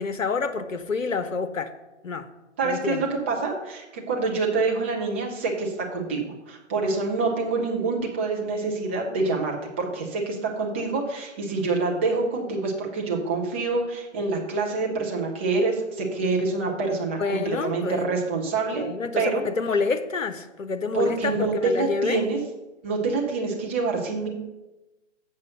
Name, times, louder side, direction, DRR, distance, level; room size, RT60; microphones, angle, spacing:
voice 1, 0.0-1.7 2.0-2.3 2.6-3.0 17.2-18.1 18.7-22.3, left 4 dB, 80° left, 9 dB, 0.9 m, -28 dB
voice 2, 2.6-18.9 19.2-19.4 20.9-22.4 22.8-24.3, right 3 dB, 10° right, -1 dB, 0.5 m, -26 dB
7.6 x 5.4 x 6.3 m, 1.1 s
figure-of-eight pair, 135°, 38 cm